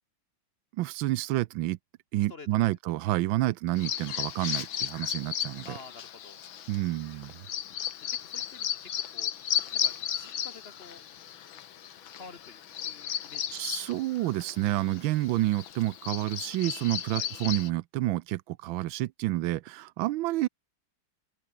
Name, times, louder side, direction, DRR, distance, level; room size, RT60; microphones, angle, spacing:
voice 1, 0.8-1.8 2.1-5.7 6.7-7.4 13.5-20.5, right 16 dB, 85° right, 1.4 m, -29 dB
voice 2, 2.3-2.8 5.6-6.4 8.1-9.3 9.7-11.0 12.1-13.7 17.1-17.3, left 3 dB, 40° left, 0.9 m, -49 dB
Bird vocalization bird call bird song, 3.8-17.7, left 9 dB, 85° left, 2.1 m, -35 dB
open air
omnidirectional pair, 2.1 m